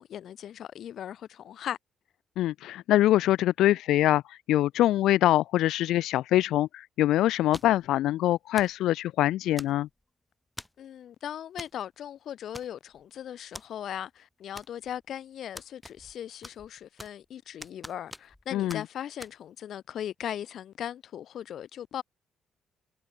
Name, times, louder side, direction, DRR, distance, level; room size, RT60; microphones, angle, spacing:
voice 1, 0.0-1.8 10.8-22.0, left 10 dB, 70° left, 1.3 m, -38 dB
voice 2, 2.4-9.9 18.5-18.8, left 14 dB, 85° left, 0.5 m, -24 dB
sound 1, 7.5-7.9 8.6-8.8 9.6-10.0 10.6-10.9 11.6-11.8 12.0-12.1 12.5-13.0 13.5-13.7 14.6-15.0 15.6-16.2 16.4-17.3 17.6-18.4 18.7-18.8 19.2-19.3, left 1 dB, 10° left, 4.5 m, -44 dB
cardioid pair, 90°, 0 cm